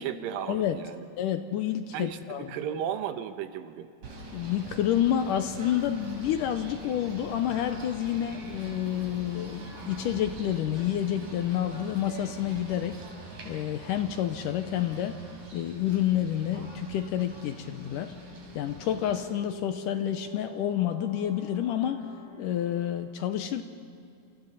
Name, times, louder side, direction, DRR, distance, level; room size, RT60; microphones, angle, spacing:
voice 1, 0.0-1.0 1.9-3.9, right 9 dB, 75° right, 9 dB, 2.6 m, -34 dB
voice 2, 1.2-2.5 4.3-13.0 13.5-15.2 15.5-18.1 18.5-22.0 22.4-23.6, left 11 dB, 75° left, 8 dB, 2.1 m, -29 dB
Singing / Bird, 4.0-19.3, right 3 dB, 50° right, 5.3 m, -45 dB
sound 1, 4.3-22.9, left 1 dB, 40° left, 7.9 m, -48 dB
29.0 x 28.0 x 4.1 m, 2.5 s
omnidirectional pair, 4.3 m